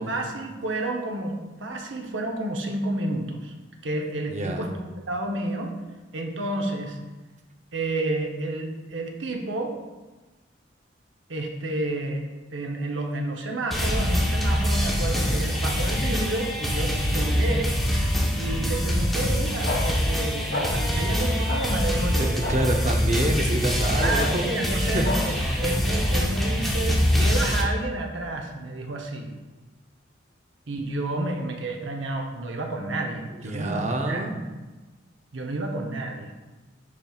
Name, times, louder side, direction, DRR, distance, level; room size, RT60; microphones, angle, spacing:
voice 1, 0.0-3.5 3.8-5.8 6.1-7.0 7.7-9.8 11.3-17.8 18.3-22.3 24.0-29.3 30.7-34.5 35.3-36.3, right 2 dB, 80° right, 2 dB, 0.8 m, -30 dB
voice 2, 4.3-4.6 18.5-18.7 20.9-21.0 22.2-25.5 33.4-34.3, right 1 dB, 40° right, 3 dB, 0.6 m, -28 dB
sound 1, 13.7-27.6, equal, ahead, 0.9 m, -24 dB
sound 2, 19.6-19.8 20.5-20.7 21.5-21.6 22.4-22.5 24.0-24.1 25.0-25.2, left 3 dB, 75° left, 1.2 m, -28 dB
11.0 x 4.4 x 2.4 m, 1.2 s
head